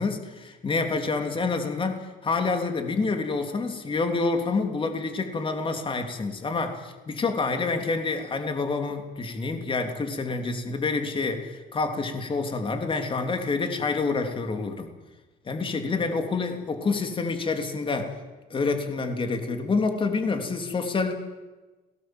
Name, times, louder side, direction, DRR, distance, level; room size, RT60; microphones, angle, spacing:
voice 1, 0.0-14.9 15.4-18.1 18.5-21.1, left 4 dB, 30° left, 5 dB, 3.3 m, -27 dB
27.5 x 18.5 x 7.9 m, 1.2 s
cardioid pair, 110°, 17 cm